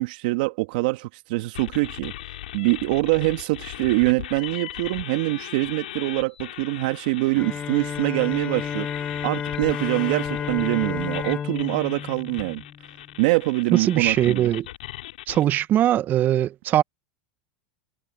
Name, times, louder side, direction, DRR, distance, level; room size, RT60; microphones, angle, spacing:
voice 1, 0.0-2.1 2.5-8.9 9.2-12.6 13.2-14.5, right 23 dB, 65° right, 2.0 m, -24 dB
sound 1, 1.5-15.4, left 14 dB, 80° left, 3.4 m, -38 dB
Bowed string instrument, 7.4-13.2, left 7 dB, 25° left, 1.5 m, -31 dB
voice 2, 13.7-14.7 15.3-16.8, right 12 dB, 40° right, 1.1 m, -21 dB
hypercardioid pair, 105°, 5 cm